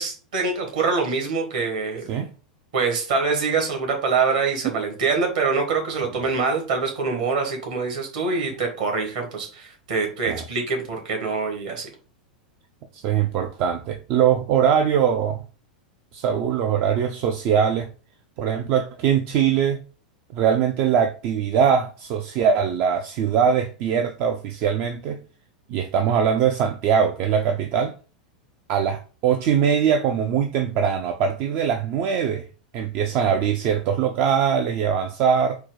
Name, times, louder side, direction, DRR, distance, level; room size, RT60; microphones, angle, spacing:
voice 1, 0.0-2.2 2.7-11.9, right 4 dB, 60° right, 1.4 m, -25 dB
voice 2, 12.9-15.4 16.1-17.9 18.4-19.8 20.3-25.2 25.7-27.9 28.7-32.5 32.7-35.6, right 8 dB, 40° right, 0.4 m, -22 dB
4.4 x 2.1 x 3.9 m
figure-of-eight pair, 90°, 4 cm